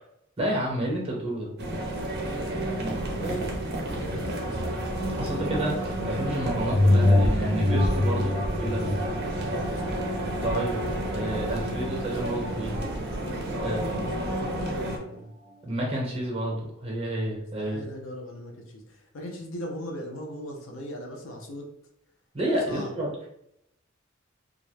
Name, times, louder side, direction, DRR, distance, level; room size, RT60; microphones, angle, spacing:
voice 1, 0.4-1.5 3.2-3.5 5.1-9.0 10.4-10.8 11.1-12.8 13.6-14.1 15.6-17.9 22.3-23.3, right 1 dB, 30° right, -2 dB, 0.8 m, -30 dB
sound 1, 1.6-15.0, right 1 dB, 55° right, 0.6 m, -31 dB
voice 2, 2.1-4.7 5.1-5.4 9.1-10.1 13.5-15.3 17.6-21.7 22.7-22.9, equal, 90° left, 1 dB, 0.6 m, -40 dB
sound 2, 6.7-11.6 12.1-12.2, left 1 dB, 35° left, 0.4 m, -25 dB
2.4 x 2.1 x 3.1 m, 0.76 s
head